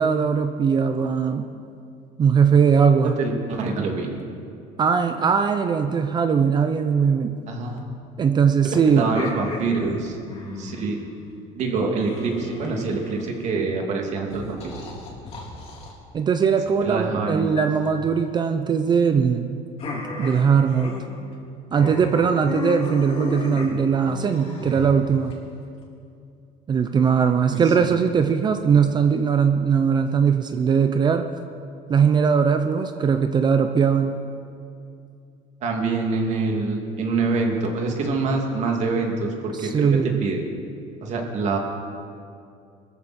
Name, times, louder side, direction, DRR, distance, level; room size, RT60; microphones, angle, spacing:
voice 1, 0.0-1.5 2.2-3.2 4.8-7.4 8.2-9.1 16.1-19.6 20.2-20.9 21.7-25.3 26.7-31.3 31.9-34.2 39.5-40.2, right 6 dB, 30° right, 7 dB, 0.6 m, -20 dB
voice 2, 3.2-4.2 7.5-7.8 8.9-10.2 10.6-11.0 11.5-14.8 16.8-17.5 27.5-28.0 35.6-40.4 41.0-41.6, right 3 dB, 50° right, 1 dB, 2.5 m, -25 dB
sound 1, 8.9-10.9 12.0-13.4 14.3-15.9 17.5-18.0 19.8-21.0 21.3-21.5 21.7-25.3, left 3 dB, 40° left, 3.4 m, -33 dB
22.0 x 14.0 x 4.3 m, 2.5 s
cardioid pair, 145°, 15 cm